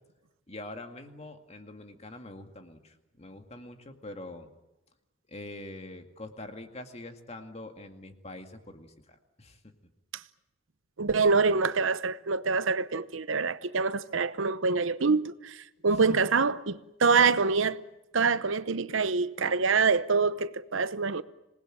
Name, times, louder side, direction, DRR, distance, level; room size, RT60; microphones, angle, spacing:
voice 1, 0.5-4.5 5.3-9.7 16.1-16.2, left 2 dB, 30° left, 2.2 m, -44 dB
voice 2, 11.0-17.8 18.1-21.2, right 4 dB, 75° right, 0.9 m, -25 dB
26.5 x 19.5 x 9.1 m
head